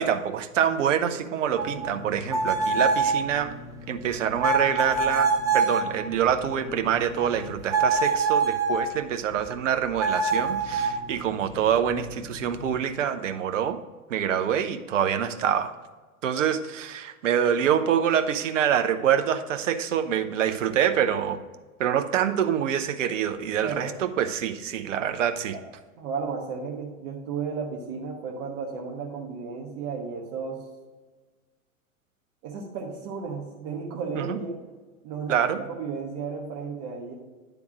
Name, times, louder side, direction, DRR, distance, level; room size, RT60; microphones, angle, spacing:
voice 1, 0.0-3.5 3.9-13.8 14.1-15.7 16.2-21.4 21.8-25.5 34.2-34.4 35.3-35.6, right 9 dB, 60° right, 8 dB, 0.8 m, -26 dB
sound 1, 1.6-9.0 10.0-12.9, right 4 dB, 10° right, 0.6 m, -27 dB
voice 2, 23.6-23.9 26.0-30.6 32.4-34.6 35.0-37.1, right 5 dB, 40° right, -2 dB, 1.2 m, -34 dB
10.0 x 3.5 x 6.0 m, 1.3 s
figure-of-eight pair, 100°, 42 cm